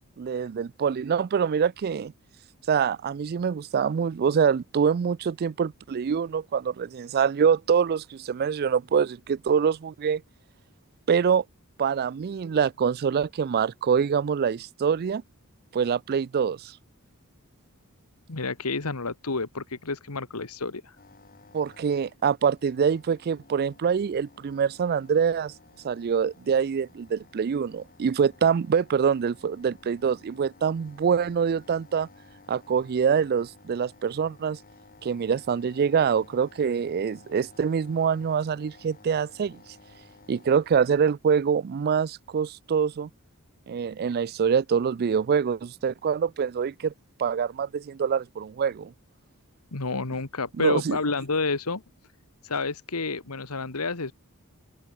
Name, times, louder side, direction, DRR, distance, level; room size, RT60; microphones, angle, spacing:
voice 1, 0.2-2.1 2.7-10.2 11.1-11.4 11.8-15.2 15.7-16.7 21.5-25.5 25.8-32.1 32.5-34.6 35.0-39.6 40.3-43.1 43.7-46.9 47.2-48.9 50.6-51.0, right 6 dB, 45° right, 0.3 m, -25 dB
voice 2, 18.3-20.9 49.7-51.8 52.4-54.1, left 3 dB, 90° left, 1.7 m, -30 dB
sound 1, 21.0-40.9, left 3 dB, 40° left, 5.7 m, -55 dB
open air
head